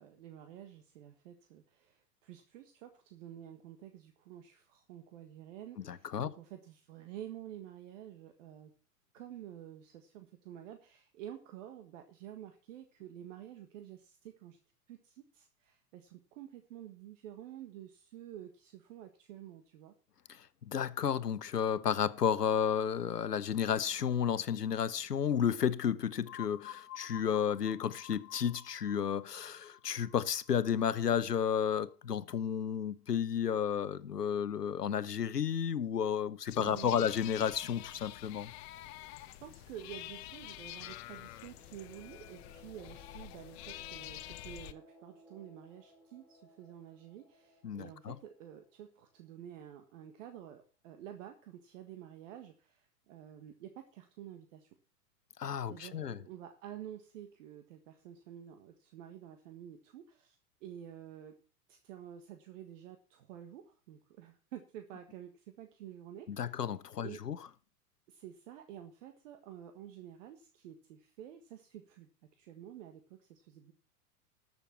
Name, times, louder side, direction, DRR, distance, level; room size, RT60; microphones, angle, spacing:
voice 1, 0.0-8.7 9.1-14.6 14.9-19.9 36.6-37.1 39.3-54.7 55.7-61.4 61.7-66.5 67.0-67.2 68.1-72.1 72.3-73.7, right 11 dB, 55° right, 1.6 m, -50 dB
voice 2, 5.8-6.3 20.3-38.5 47.6-48.2 55.4-56.2 66.3-67.4, left 8 dB, 85° left, 0.9 m, -32 dB
sound 1, 26.2-31.9, left 13 dB, 65° left, 1.4 m, -51 dB
sound 2, 36.5-44.7, left 15 dB, 45° left, 1.0 m, -47 dB
sound 3, 40.9-49.5, left 2 dB, ahead, 5.8 m, -60 dB
13.5 x 6.9 x 5.8 m
figure-of-eight pair, 105°, 46 cm